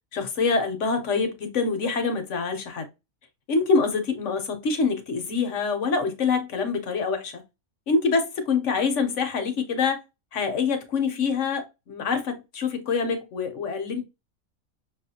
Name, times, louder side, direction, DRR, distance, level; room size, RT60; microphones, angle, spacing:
voice 1, 0.1-2.9 3.5-7.4 7.9-10.0 10.3-14.0, left 4 dB, 60° left, 1.1 m, -25 dB
6.1 x 2.5 x 2.7 m
omnidirectional pair, 1.5 m